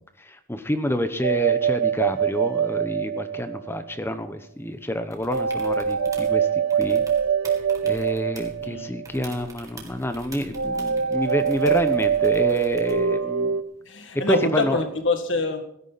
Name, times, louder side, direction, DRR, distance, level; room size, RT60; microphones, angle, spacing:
voice 1, 0.2-7.0 7.8-13.6 14.3-14.8, equal, 10° left, 9 dB, 0.9 m, -28 dB
sound 1, 1.2-3.9 5.3-9.2 10.5-13.6, right 7 dB, 85° right, 0.9 m, -24 dB
sound 2, 5.1-6.4 6.7-8.7 9.0-13.1 15.0-15.1, right 2 dB, 15° right, 2.3 m, -45 dB
voice 2, 13.8-15.6, left 2 dB, 60° left, 6 dB, 1.9 m, -25 dB
16.5 x 12.5 x 4.1 m, 0.72 s
head